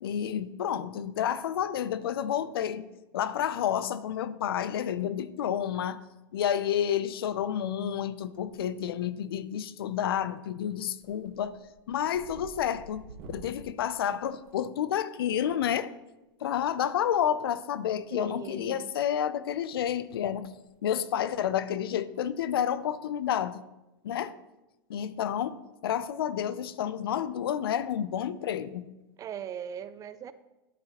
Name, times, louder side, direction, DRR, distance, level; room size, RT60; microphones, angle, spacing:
voice 1, 0.0-2.9 3.1-6.0 6.3-11.6 11.9-15.9 16.4-20.5 20.8-23.6 24.0-24.4 24.9-28.9, left 9 dB, 75° left, 0.5 m, -30 dB
sound 1, 8.3-8.9 9.2-9.7 10.1-10.4 10.7-15.1 16.5-16.6 17.9-18.7 18.9-19.2 19.7-19.8 20.0-20.1 20.5-20.7 21.0-21.1 22.6-22.9, right 2 dB, 55° right, 1.4 m, -51 dB
voice 2, 18.1-18.9 29.2-30.3, right 8 dB, 30° right, 0.4 m, -39 dB
12.5 x 5.1 x 2.9 m
hypercardioid pair, 105°, 12 cm